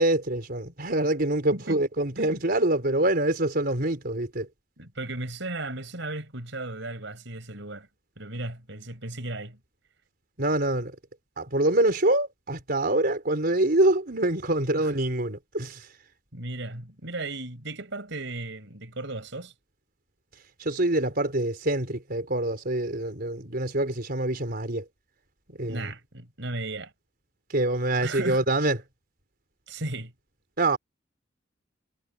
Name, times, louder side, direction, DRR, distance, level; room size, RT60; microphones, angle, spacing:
voice 1, 0.0-4.5 10.4-11.0 11.4-15.9 20.6-24.8 25.5-25.9 27.5-28.8 30.6-30.8, right 1 dB, 50° right, 4.4 m, -25 dB
voice 2, 1.5-1.8 2.2-2.3 4.8-7.9 8.2-9.6 14.7-14.8 16.3-19.5 25.6-26.9 28.0-28.4 29.7-30.1, right 2 dB, 70° right, 5.7 m, -35 dB
head